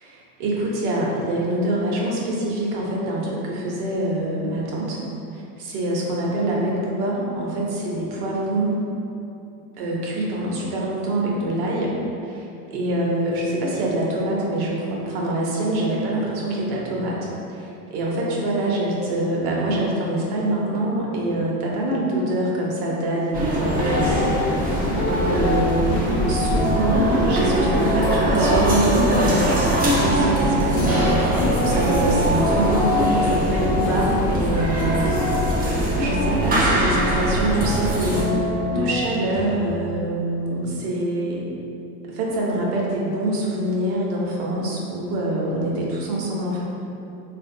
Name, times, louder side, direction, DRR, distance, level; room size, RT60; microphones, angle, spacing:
voice 1, 0.0-5.0 5.3-8.7 9.8-11.9 12.2-12.5 12.7-24.3 24.7-31.0 31.6-35.1 36.0-41.4 42.0-46.6, right 1 dB, 55° right, -3 dB, 0.8 m, -25 dB
sound 1, 23.3-38.2, right 1 dB, 20° right, 0.5 m, -22 dB
sound 2, 23.7-39.6, left 1 dB, 45° left, 0.7 m, -26 dB
3.5 x 2.5 x 2.5 m, 2.8 s
supercardioid pair, 115°, 46 cm